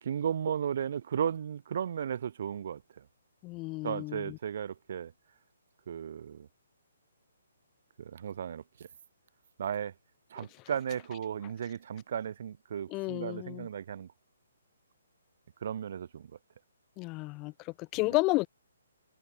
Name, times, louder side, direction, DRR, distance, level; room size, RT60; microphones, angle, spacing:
voice 1, 0.0-3.0 3.8-5.1 5.9-6.5 8.0-8.9 9.6-9.9 10.3-14.1 15.6-16.3 18.0-18.1, right 8 dB, 50° right, 3.6 m, -35 dB
voice 2, 3.4-4.4 12.9-13.7 17.0-18.5, left 24 dB, 20° left, 2.2 m, -32 dB
hypercardioid pair, 160°, 0 cm